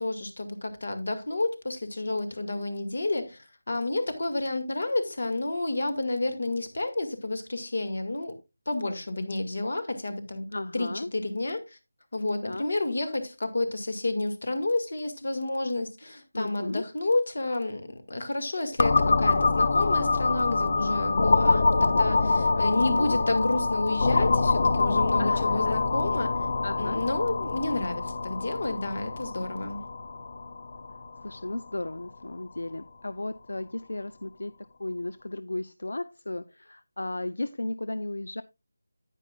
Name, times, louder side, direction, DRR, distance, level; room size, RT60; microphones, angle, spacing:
voice 1, 0.0-8.3 8.7-10.5 10.7-11.8 12.1-26.4 26.8-29.8, left 2 dB, 55° left, 2.0 m, -30 dB
voice 2, 10.5-11.1 12.4-12.7 16.3-16.8 22.6-23.2 25.2-25.7 26.6-27.0 31.2-34.5 34.8-38.4, left 2 dB, 75° left, 0.5 m, -35 dB
sound 1, 18.8-32.3, left 3 dB, 35° left, 0.6 m, -25 dB
9.9 x 9.7 x 2.4 m
figure-of-eight pair, 175°, 0 cm